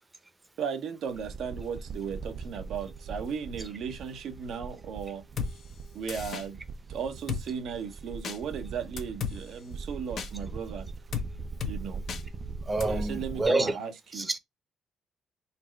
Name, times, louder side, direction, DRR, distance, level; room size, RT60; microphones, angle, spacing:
voice 1, 0.6-5.2 5.9-6.6 6.9-10.9 11.6-12.0 12.9-14.3, right 6 dB, 75° right, 0.9 m, -36 dB
sound 1, 1.1-13.5, right 4 dB, 50° right, 0.5 m, -41 dB
Drum kit, 5.4-5.5 6.1-6.4 7.3-7.4 8.2-8.4 9.0-9.4 10.2-10.3 11.1-11.3 11.6-11.8 12.1-12.2 12.8-12.9, left 7 dB, 60° left, 0.8 m, -33 dB
voice 2, 12.6-13.8 14.1-14.4, right 2 dB, 20° right, 0.8 m, -27 dB
4.2 x 2.1 x 4.5 m
cardioid pair, 90°, 0 cm